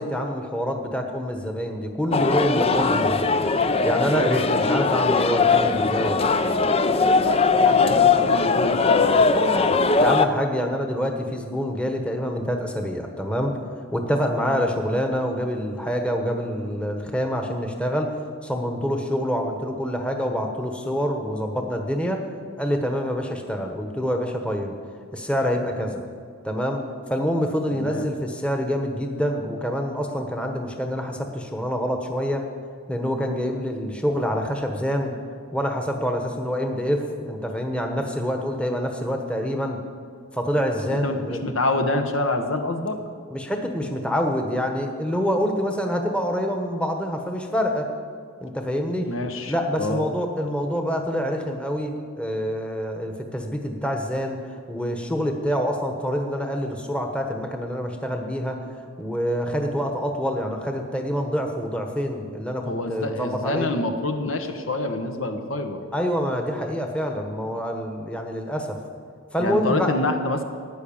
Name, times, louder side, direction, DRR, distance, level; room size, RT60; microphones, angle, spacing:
voice 1, 0.0-3.3 3.8-6.4 10.0-13.6 13.9-18.1 18.4-22.2 22.6-24.7 25.1-26.0 26.4-32.4 32.9-35.2 35.5-39.8 40.3-41.4 43.3-47.9 48.4-49.1 49.5-54.4 54.7-58.6 59.0-63.7 65.9-68.8 69.3-69.9, equal, 5° left, 3 dB, 1.1 m, -26 dB
sound 1, 2.1-10.3, left 4 dB, 30° left, 0.5 m, -20 dB
voice 2, 7.6-9.2 27.8-28.0 40.9-43.0 49.0-50.1 62.6-65.8 69.4-70.4, left 2 dB, 70° left, 6 dB, 1.3 m, -27 dB
15.5 x 9.9 x 7.2 m, 2.1 s
head